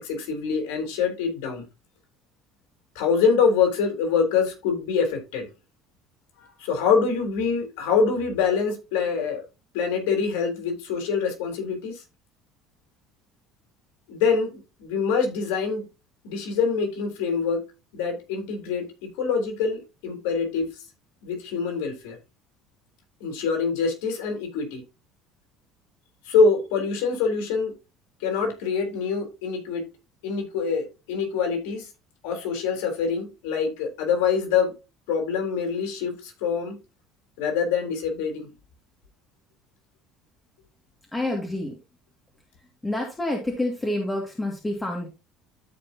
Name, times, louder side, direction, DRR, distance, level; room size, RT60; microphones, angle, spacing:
voice 1, 0.0-1.6 3.0-5.5 6.6-9.4 9.7-12.0 14.1-15.8 16.2-17.6 17.9-18.9 19.2-20.7 21.2-22.2 23.2-24.8 26.3-27.7 28.2-29.8 30.2-31.9 32.2-34.7 35.1-36.7 37.4-38.5, left 5 dB, 85° left, 3 dB, 3.7 m, -25 dB
voice 2, 41.1-41.8 42.8-45.1, left 1 dB, 15° left, 0 dB, 2.2 m, -28 dB
13.5 x 5.3 x 2.8 m, 0.28 s
supercardioid pair, 105°, 0 cm